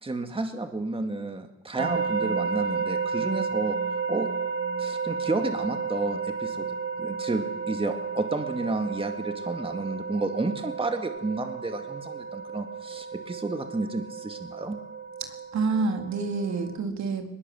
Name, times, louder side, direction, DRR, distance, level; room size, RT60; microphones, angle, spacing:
voice 1, 0.0-3.8 4.1-4.3 4.8-14.8, right 2 dB, 20° right, 5 dB, 2.2 m, -31 dB
sound 1, 1.8-16.8, right 5 dB, 45° right, 2.3 m, -32 dB
voice 2, 15.2-17.3, right 4 dB, 65° right, 4 dB, 3.8 m, -28 dB
21.0 x 20.5 x 7.8 m, 0.93 s
cardioid pair, 90°, 30 cm